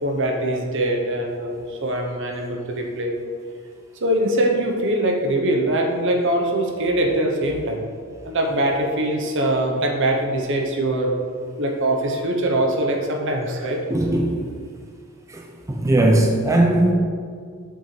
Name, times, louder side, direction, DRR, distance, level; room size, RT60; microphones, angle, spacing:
voice 1, 0.0-3.2 4.0-7.8 8.2-11.1 11.6-13.8, right 1 dB, 60° right, 1 dB, 0.9 m, -22 dB
voice 2, 13.9-14.4 15.3-15.4 15.7-16.9, right 1 dB, 15° right, 0 dB, 0.5 m, -18 dB
7.4 x 5.3 x 3.3 m, 2.1 s
head